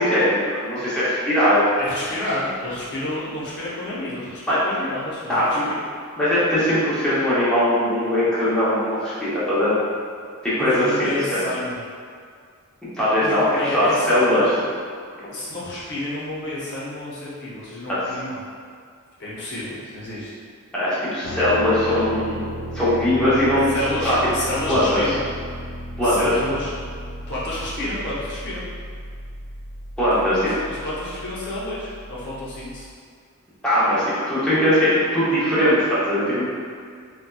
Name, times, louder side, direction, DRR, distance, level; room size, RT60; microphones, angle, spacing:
voice 1, 0.0-1.7 4.5-4.6 5.3-5.7 6.2-9.7 10.4-11.4 13.0-13.5 13.7-14.5 17.9-18.0 20.7-22.4 22.7-23.7 24.0-24.2 24.7-25.0 26.0-26.3 30.0-30.4 33.6-36.4, left 1 dB, 5° left, -12 dB, 0.7 m, -20 dB
voice 2, 1.8-5.8 10.6-11.8 13.2-14.5 15.2-18.4 19.2-20.3 23.7-25.2 26.0-26.7 27.3-28.6 30.1-32.9, left 1 dB, 50° left, -8 dB, 0.7 m, -30 dB
sound 1, 21.2-32.9, equal, 85° left, 0.5 m, -35 dB
4.1 x 2.2 x 2.3 m, 2.1 s
head